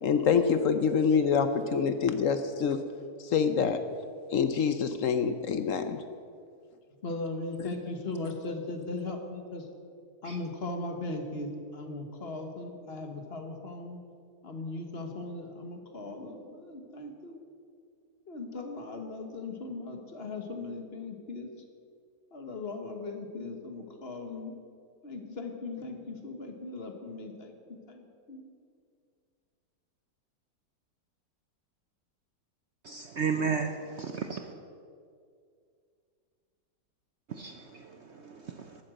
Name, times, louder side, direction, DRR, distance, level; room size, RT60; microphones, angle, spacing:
voice 1, 0.0-2.8 3.3-3.8 4.3-6.0, left 6 dB, 60° left, 10 dB, 0.9 m, -26 dB
voice 2, 7.0-9.7 10.2-14.0 14.4-17.4 18.3-21.5 22.3-24.5 25.0-27.5 27.9-28.4, left 2 dB, 35° left, 4 dB, 1.4 m, -38 dB
voice 3, 32.8-34.5 37.3-38.8, right 5 dB, 60° right, 5 dB, 0.7 m, -34 dB
13.0 x 8.8 x 7.7 m, 2.3 s
omnidirectional pair, 1.9 m